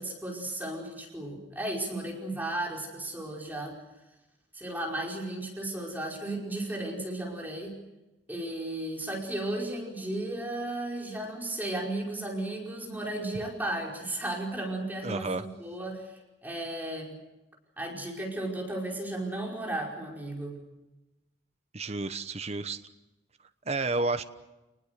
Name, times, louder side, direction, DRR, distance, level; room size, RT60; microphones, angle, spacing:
voice 1, 0.0-3.8 4.5-7.7 8.3-17.2 17.8-20.6, right 1 dB, 10° right, -1 dB, 5.2 m, -34 dB
voice 2, 15.0-15.4 21.7-22.8 23.7-24.2, right 3 dB, 40° right, 10 dB, 1.0 m, -30 dB
29.0 x 20.5 x 6.7 m, 1.0 s
head